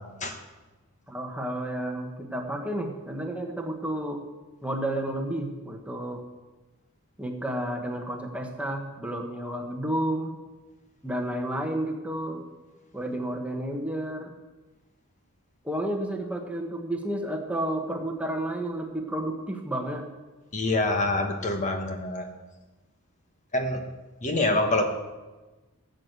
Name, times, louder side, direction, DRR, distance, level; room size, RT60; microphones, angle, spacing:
voice 1, 1.1-4.2 4.6-6.2 7.2-10.3 11.0-12.4 12.9-14.3 15.6-20.1, right 1 dB, 5° right, 2 dB, 1.3 m, -31 dB
voice 2, 20.5-22.3 23.5-23.8 24.2-24.8, left 2 dB, 35° left, 4 dB, 1.5 m, -25 dB
16.0 x 7.9 x 6.8 m, 1.2 s
head